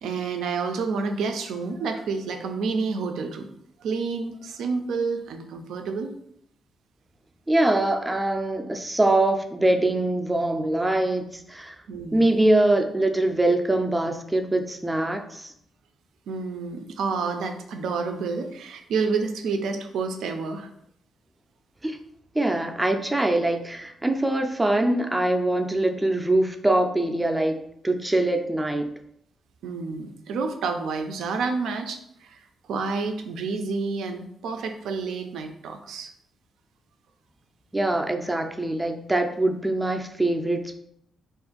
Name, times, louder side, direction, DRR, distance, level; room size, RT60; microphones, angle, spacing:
voice 1, 0.0-3.5 3.8-6.1 11.9-12.4 16.3-20.7 29.6-36.1, right 4 dB, 85° right, 6 dB, 0.4 m, -29 dB
voice 2, 7.5-11.8 12.1-15.5 21.8-22.0 22.3-28.9 37.7-40.8, right 1 dB, 15° right, 5 dB, 0.4 m, -23 dB
2.5 x 2.4 x 3.8 m, 0.73 s
cardioid pair, 95°, 0 cm